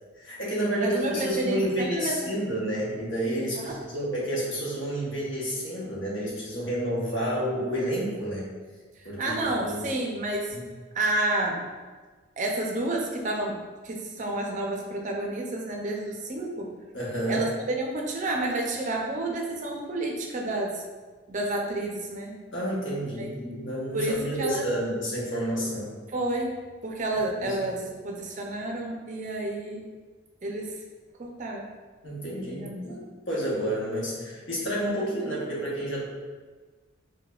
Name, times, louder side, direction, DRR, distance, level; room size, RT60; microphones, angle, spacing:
voice 1, 0.2-8.5 9.0-9.9 10.5-10.7 16.9-17.4 22.5-25.9 27.4-27.6 32.0-36.0, right 1 dB, 70° left, -5 dB, 1.0 m, -30 dB
voice 2, 0.8-2.3 3.7-3.8 9.2-10.6 10.9-11.6 12.4-16.7 17.3-20.8 21.3-22.4 23.2-23.3 23.9-24.7 26.1-26.5 26.8-29.8 30.4-30.7 31.2-31.7 32.6-32.7, right 1 dB, 40° right, 0 dB, 0.4 m, -30 dB
4.7 x 2.1 x 2.3 m, 1.4 s
head